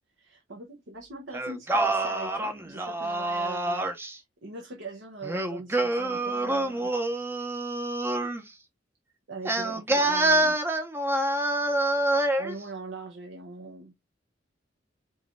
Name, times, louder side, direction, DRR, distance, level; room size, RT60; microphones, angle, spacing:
voice 1, 0.2-6.9 9.3-10.6 12.4-13.9, right 3 dB, 75° right, 0.9 m, -41 dB
Singing, 1.3-4.1 5.2-8.4 9.4-12.5, right 2 dB, 15° right, 0.6 m, -26 dB
4.9 x 3.1 x 2.5 m
head